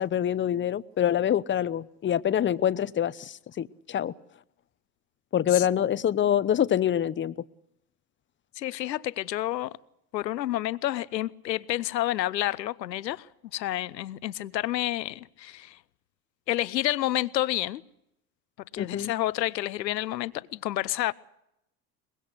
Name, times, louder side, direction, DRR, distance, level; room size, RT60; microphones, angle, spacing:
voice 1, 0.0-4.1 5.3-7.3 18.8-19.1, left 10 dB, 25° left, 0.8 m, -25 dB
voice 2, 8.6-9.8 10.1-13.3 13.5-15.8 16.5-17.8 18.7-21.1, left 14 dB, 80° left, 0.9 m, -29 dB
23.5 x 21.5 x 6.6 m
hypercardioid pair, 80°, 50 cm